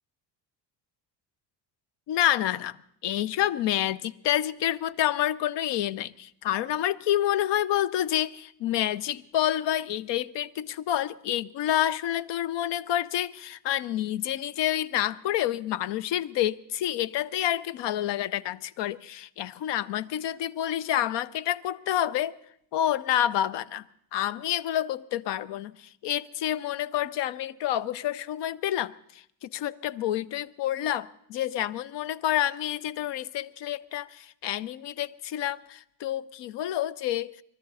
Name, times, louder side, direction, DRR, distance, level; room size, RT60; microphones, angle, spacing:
voice 1, 2.1-2.8 3.0-22.4 22.7-23.8 24.1-37.4, left 12 dB, 70° left, 0.7 m, -28 dB
22.5 x 13.5 x 4.1 m
cardioid pair, 120°, 44 cm